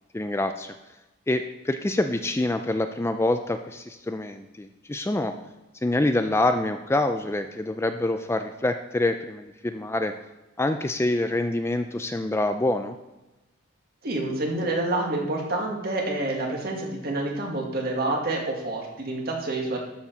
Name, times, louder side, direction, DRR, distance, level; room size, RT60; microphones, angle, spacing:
voice 1, 0.1-0.7 1.3-5.3 5.8-10.1 10.6-13.0, left 2 dB, 15° left, 7 dB, 0.4 m, -26 dB
voice 2, 14.0-19.8, right 2 dB, 50° right, -1 dB, 2.0 m, -28 dB
12.5 x 4.8 x 5.3 m, 1.0 s
head